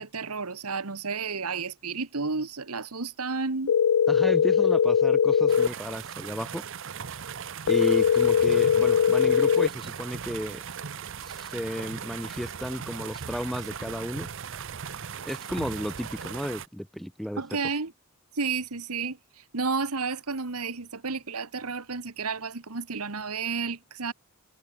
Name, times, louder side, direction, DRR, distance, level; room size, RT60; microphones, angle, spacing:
voice 1, 0.0-3.7 17.4-17.9 18.3-24.1, right 4 dB, 85° right, 1.5 m, -31 dB
sound 1, 3.7-5.7 7.7-9.7, left 7 dB, 85° left, 0.4 m, -21 dB
voice 2, 4.1-6.6 7.7-10.6 11.2-14.3 15.2-17.4, equal, ahead, 1.4 m, -33 dB
sound 2, 5.5-16.7, right 7 dB, 55° right, 0.7 m, -38 dB
head